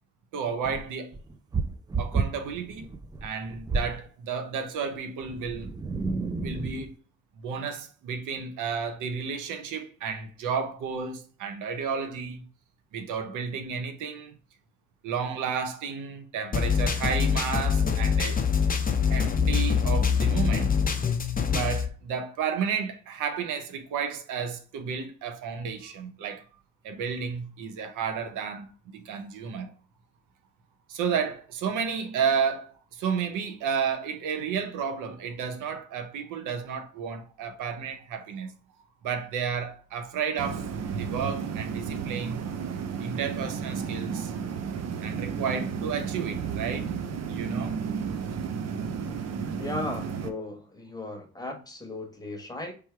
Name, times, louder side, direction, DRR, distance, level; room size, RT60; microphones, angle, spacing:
voice 1, 0.3-1.1 2.0-2.9 3.2-5.7 6.4-6.9 7.4-12.5 12.9-14.3 15.0-18.4 19.1-20.7 21.5-26.4 26.8-29.7 30.9-38.5 39.0-40.7 40.9-42.6 43.0-44.3 45.0-46.9 47.3-47.7, right 6 dB, 90° right, 0.8 m, -32 dB
sound 1, 0.6-4.0 5.2-6.9, right 4 dB, 15° right, 0.3 m, -31 dB
sound 2, 16.5-21.9, left 6 dB, 30° left, 0.8 m, -24 dB
sound 3, 40.4-50.3, right 6 dB, 60° right, 0.7 m, -33 dB
voice 2, 49.6-52.7, left 2 dB, 15° left, 1.2 m, -36 dB
3.5 x 3.0 x 4.5 m
cardioid pair, 90°, 30 cm